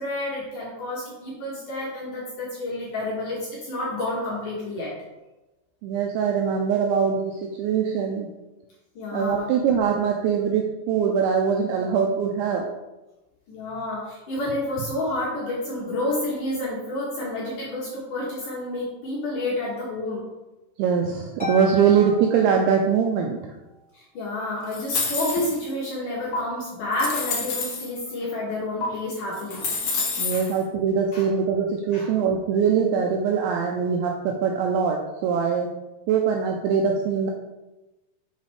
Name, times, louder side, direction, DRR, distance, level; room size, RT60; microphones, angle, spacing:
voice 1, 0.0-4.9 9.0-9.5 13.5-20.3 23.9-29.7 30.3-30.5 31.1-31.3 31.9-32.1, left 1 dB, 70° left, -5 dB, 1.9 m, -30 dB
voice 2, 5.8-8.3 9.1-12.7 20.8-23.4 30.2-35.7 36.1-37.3, right 6 dB, 85° right, 2 dB, 2.6 m, -22 dB
Harp, 21.4-23.3, equal, 10° right, 0.4 m, -34 dB
sound 1, 24.7-25.7 26.3-26.4 26.9-27.9 28.8-28.9 29.3-30.5, left 4 dB, 90° left, 1.6 m, -28 dB
8.2 x 6.4 x 3.5 m, 1.0 s
omnidirectional pair, 5.9 m